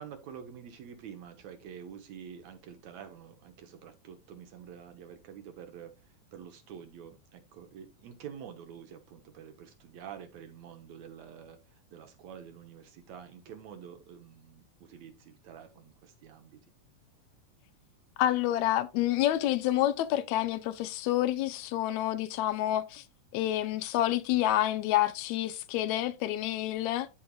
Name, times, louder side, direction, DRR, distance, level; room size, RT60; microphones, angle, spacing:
voice 1, 0.0-16.6, right 8 dB, 65° right, 2.0 m, -48 dB
voice 2, 18.2-23.0 23.3-27.1, left 13 dB, 80° left, 1.7 m, -28 dB
13.5 x 4.6 x 2.3 m
omnidirectional pair, 3.9 m